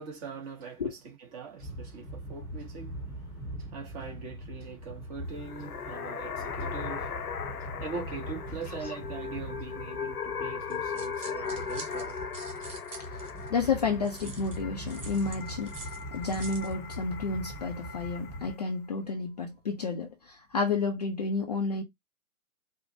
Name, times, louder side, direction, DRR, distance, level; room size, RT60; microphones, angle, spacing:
voice 1, 0.0-12.5, right 4 dB, 25° right, 1.0 m, -42 dB
sound 1, 1.6-18.5, right 1 dB, 10° left, 0.8 m, -42 dB
sound 2, 5.3-18.7, left 6 dB, 90° left, 0.7 m, -38 dB
sound 3, 10.7-13.5 14.0-16.7, right 4 dB, 55° right, 1.9 m, -46 dB
voice 2, 13.5-21.8, left 4 dB, 30° left, 0.4 m, -31 dB
4.8 x 2.1 x 2.6 m
figure-of-eight pair, 130°, 44 cm